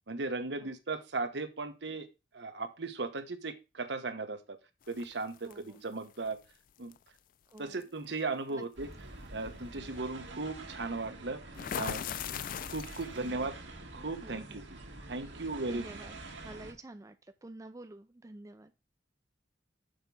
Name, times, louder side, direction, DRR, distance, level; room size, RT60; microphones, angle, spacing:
voice 1, 0.1-2.1 2.3-4.6 4.9-6.4 6.8-6.9 7.6-8.9 9.3-11.4 11.7-12.0 12.7-13.5 13.9-14.6 15.1-15.9, right 3 dB, 70° right, 8 dB, 1.0 m, -37 dB
sound 1, 4.9-5.5 6.9-7.1 7.6-7.8 11.5-13.2, left 9 dB, 50° left, 0.3 m, -38 dB
voice 2, 5.4-5.8 7.5-7.9 8.5-8.6 13.2-13.5 14.2-14.6 15.3-16.1 16.4-18.7, right 2 dB, 20° right, 9 dB, 0.4 m, -49 dB
sound 2, 8.7-16.7, right 2 dB, 85° right, 1.8 m, -47 dB
6.6 x 4.6 x 5.3 m, 0.27 s
head